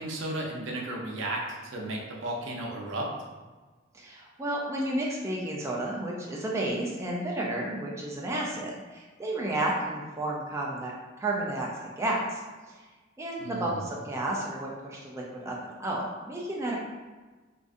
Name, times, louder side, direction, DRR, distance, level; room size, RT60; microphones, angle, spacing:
voice 1, 0.0-1.4 1.7-3.0 13.4-13.8, right 1 dB, 75° right, -1 dB, 0.6 m, -34 dB
voice 2, 3.9-10.9 11.2-12.4 12.8-12.9 13.2-16.8, right 1 dB, 15° right, -3 dB, 0.3 m, -32 dB
3.7 x 2.5 x 2.4 m, 1.3 s
head